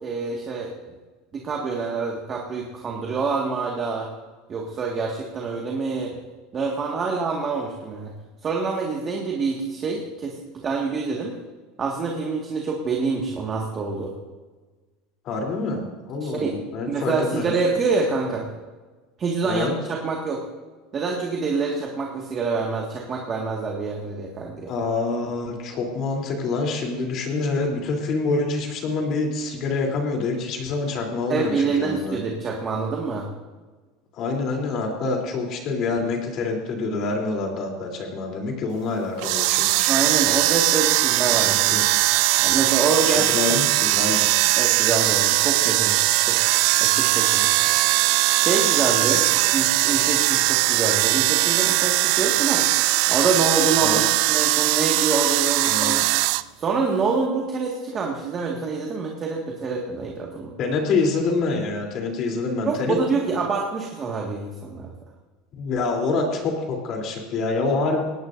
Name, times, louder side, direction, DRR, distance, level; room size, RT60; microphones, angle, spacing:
voice 1, 0.0-0.7 1.3-4.1 4.5-6.2 6.5-8.1 8.4-11.4 11.8-14.1 16.2-16.6 16.9-18.5 19.2-20.5 20.9-24.7 31.3-33.3 39.9-41.9 42.4-43.2 44.6-46.4 46.8-47.7 48.3-49.3 49.5-52.7 53.1-56.1 56.6-60.5 62.6-64.9, right 4 dB, 25° right, -1 dB, 1.9 m, -26 dB
voice 2, 15.2-17.5 19.4-19.7 24.7-32.2 34.1-39.9 41.3-41.8 43.0-44.3 49.3-49.4 53.8-54.0 55.7-56.1 60.6-63.0 65.5-68.0, left 3 dB, 40° left, 1 dB, 3.4 m, -26 dB
sound 1, 39.2-56.4, right 19 dB, 60° right, 0.4 m, -20 dB
20.0 x 18.0 x 2.7 m, 1.3 s
supercardioid pair, 160°, 0 cm